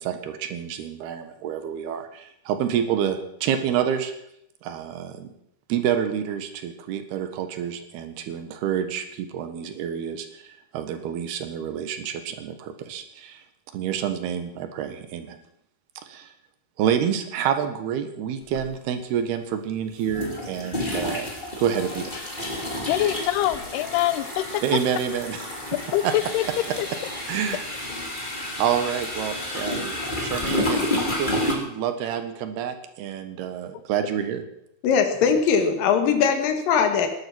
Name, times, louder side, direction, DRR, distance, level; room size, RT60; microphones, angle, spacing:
voice 1, 0.0-4.1 4.6-5.3 5.7-13.4 13.7-15.4 16.0-16.3 16.8-22.1 24.6-25.8 26.0-26.1 26.7-26.8 27.3-27.7 28.3-30.9 31.2-34.4, right 8 dB, 75° right, 8 dB, 3.4 m, -28 dB
sound 1, 18.5-18.6 20.0-31.5, left 1 dB, 15° left, 2.2 m, -30 dB
voice 2, 22.8-24.6 25.7-26.4, left 14 dB, 80° left, 15 dB, 2.7 m, -24 dB
voice 3, 34.8-37.1, left 6 dB, 65° left, 7 dB, 3.3 m, -20 dB
18.0 x 11.5 x 6.2 m, 0.76 s
omnidirectional pair, 4.7 m